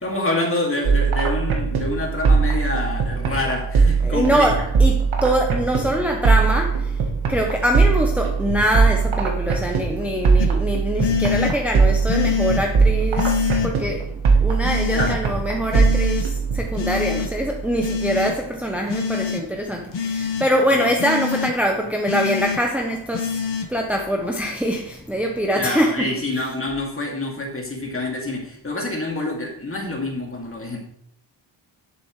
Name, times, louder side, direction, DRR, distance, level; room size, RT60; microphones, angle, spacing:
voice 1, 0.0-4.5 14.9-15.2 20.7-20.9 25.5-30.8, left 2 dB, 25° left, -1 dB, 2.4 m, -26 dB
sound 1, 0.8-18.5, right 5 dB, 85° right, 1.6 m, -21 dB
voice 2, 4.0-6.8 7.3-14.0 14.4-23.3 23.7-26.1, equal, 5° right, 0 dB, 0.9 m, -23 dB
sound 2, 10.4-10.5 11.0-11.5 12.1-12.6 13.2-13.7 14.6-15.2 15.7-16.2 16.8-17.3 17.8-18.3 18.9-19.4 19.9-20.4 21.0-21.5 22.1-22.6 23.1-23.7, left 6 dB, 60° left, 1.2 m, -24 dB
11.0 x 7.6 x 3.3 m, 0.71 s
wide cardioid pair, 125°, 48 cm